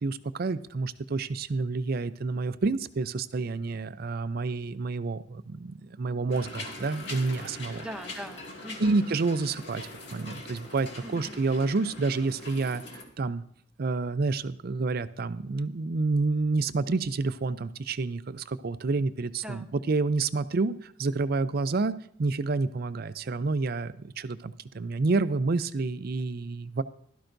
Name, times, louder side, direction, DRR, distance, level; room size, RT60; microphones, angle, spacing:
voice 1, 0.0-7.9 8.8-12.8 13.2-13.4 13.8-21.9 22.2-26.8, right 3 dB, 50° right, 13 dB, 0.5 m, -29 dB
sound 1, 6.3-13.0, left 2 dB, 60° left, 2.2 m, -42 dB
voice 2, 7.8-9.1 11.0-11.4 19.4-19.8, equal, 5° right, 7 dB, 0.6 m, -41 dB
16.5 x 12.5 x 2.6 m, 0.64 s
head